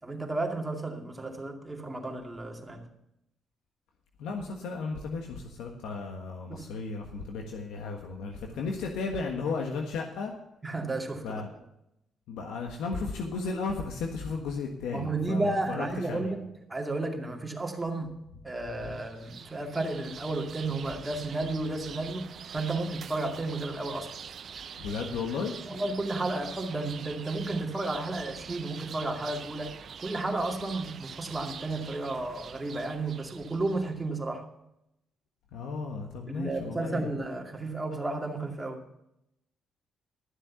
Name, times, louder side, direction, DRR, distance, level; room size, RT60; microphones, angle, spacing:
voice 1, 0.0-2.8 6.5-6.7 10.6-11.4 14.9-24.2 25.6-34.5 36.3-38.8, right 2 dB, 15° right, 2 dB, 2.3 m, -33 dB
voice 2, 4.2-10.3 11.2-11.5 12.3-16.3 18.8-19.0 24.8-25.5 35.5-37.1, left 4 dB, 85° left, 2 dB, 1.4 m, -34 dB
sound 1, 18.8-33.9, right 7 dB, 55° right, 0.5 m, -44 dB
12.5 x 7.5 x 7.0 m, 0.83 s
cardioid pair, 90°, 0 cm